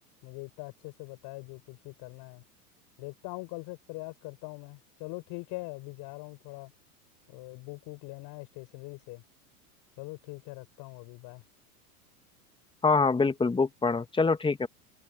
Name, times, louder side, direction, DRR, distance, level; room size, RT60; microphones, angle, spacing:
voice 1, 0.2-2.4 3.0-6.7 7.3-9.2 10.0-11.4, left 24 dB, 50° left, 6.9 m, -42 dB
voice 2, 12.8-14.7, left 4 dB, 10° left, 1.8 m, -25 dB
open air
hypercardioid pair, 105°, 46 cm